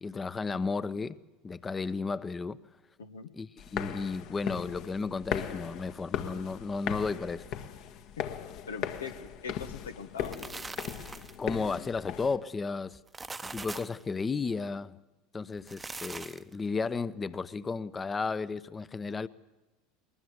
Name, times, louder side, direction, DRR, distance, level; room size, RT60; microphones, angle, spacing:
voice 1, 0.0-1.2 1.4-2.6 3.3-7.5 11.4-13.0 13.4-15.0 15.3-19.3, left 4 dB, 20° left, 0.9 m, -33 dB
voice 2, 3.0-3.3 8.4-10.4, left 6 dB, 80° left, 1.4 m, -42 dB
sound 1, 3.6-12.4, left 9 dB, 55° left, 1.7 m, -38 dB
sound 2, 10.0-11.5 12.9-14.0 15.5-16.6, right 3 dB, 15° right, 1.0 m, -42 dB
22.0 x 20.0 x 8.2 m
hypercardioid pair, 80°, 0 cm